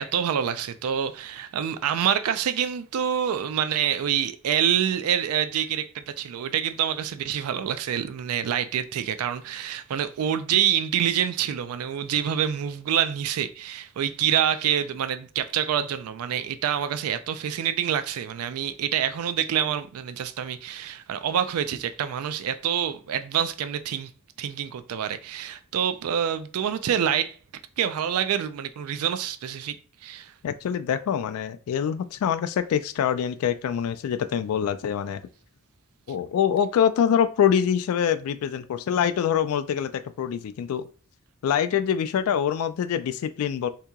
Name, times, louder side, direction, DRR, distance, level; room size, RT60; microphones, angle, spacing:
voice 1, 0.0-24.1 24.4-27.3 27.8-29.8 30.0-30.3, right 9 dB, 85° right, 0.3 m, -26 dB
voice 2, 30.4-35.2 36.1-40.9 41.4-43.7, left 8 dB, 85° left, 0.3 m, -25 dB
2.8 x 2.8 x 3.5 m
head